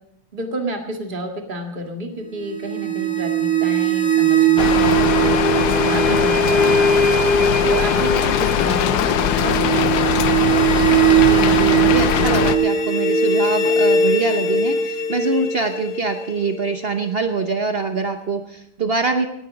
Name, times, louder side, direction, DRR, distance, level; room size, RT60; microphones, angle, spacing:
voice 1, 0.3-5.4 5.7-6.8 7.6-10.3, right 1 dB, 25° right, 3 dB, 1.9 m, -30 dB
sound 1, 2.4-17.4, right 4 dB, 25° left, 3.1 m, -20 dB
Rain, 4.6-12.6, left 10 dB, 70° left, 1.0 m, -20 dB
voice 2, 11.1-19.3, right 4 dB, 55° right, 6 dB, 0.6 m, -24 dB
18.0 x 11.0 x 5.2 m, 0.77 s
omnidirectional pair, 2.3 m